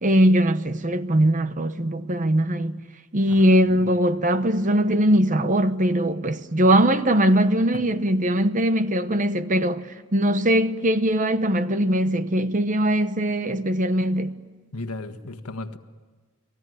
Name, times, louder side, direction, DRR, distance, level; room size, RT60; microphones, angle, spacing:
voice 1, 0.0-2.8 3.1-14.3, right 1 dB, 35° right, 0.9 m, -21 dB
voice 2, 3.3-3.9 7.7-7.8 14.7-15.8, left 2 dB, 85° left, 1.5 m, -35 dB
30.0 x 20.5 x 9.5 m
head